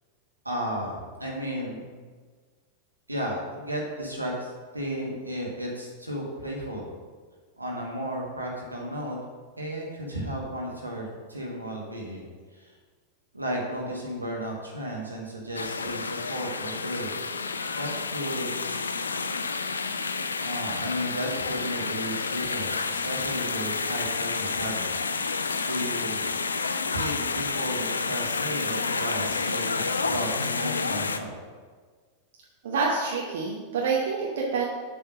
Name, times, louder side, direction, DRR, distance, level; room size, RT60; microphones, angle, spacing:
voice 1, 0.4-2.0 3.1-6.9 7.6-9.2 9.6-12.7 13.3-17.5 17.8-18.6 20.4-25.3 25.6-26.3 26.9-31.3, equal, 85° right, -2 dB, 1.4 m, -34 dB
sound 1, 15.5-31.2, left 4 dB, 75° left, 0.3 m, -30 dB
voice 2, 32.6-34.6, right 4 dB, 60° right, -2 dB, 0.8 m, -27 dB
7.2 x 3.4 x 6.0 m, 1.5 s
figure-of-eight pair, 90°, 0 cm